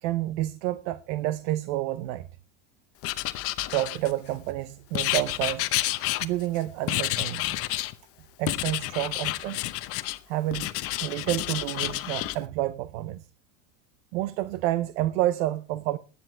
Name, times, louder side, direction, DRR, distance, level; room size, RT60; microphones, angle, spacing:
voice 1, 0.0-2.3 3.7-5.7 6.2-7.6 8.4-9.6 10.3-10.7 11.0-13.2 14.1-16.0, right 15 dB, 65° right, 0.8 m, -29 dB
Writing, 3.0-4.4 4.9-6.6 6.9-7.9 8.5-10.2 10.5-12.4, left 16 dB, 40° left, 0.8 m, -29 dB
15.5 x 9.8 x 4.5 m
supercardioid pair, 155°, 37 cm